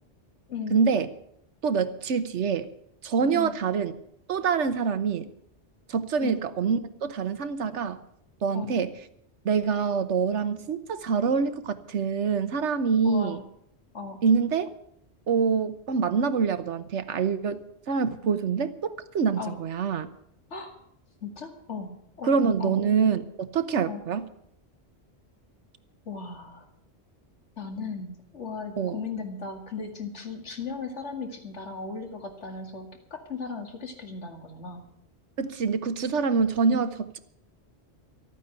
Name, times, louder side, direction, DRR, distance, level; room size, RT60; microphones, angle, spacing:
voice 1, 0.7-1.1 1.6-2.7 3.0-3.9 4.3-5.3 5.9-8.0 8.4-8.9 9.4-13.4 14.2-14.7 15.3-20.1 22.2-24.3 28.8-29.0 35.4-37.2, right 5 dB, 90° right, 12 dB, 1.3 m, -25 dB
voice 2, 13.0-13.4 13.9-14.2 19.4-19.6 20.5-20.7 21.2-22.3 22.6-22.8 23.9-24.0 26.1-26.6 27.6-34.8, left 4 dB, 90° left, 4 dB, 2.4 m, -36 dB
13.0 x 9.1 x 8.9 m, 0.72 s
omnidirectional pair, 1.2 m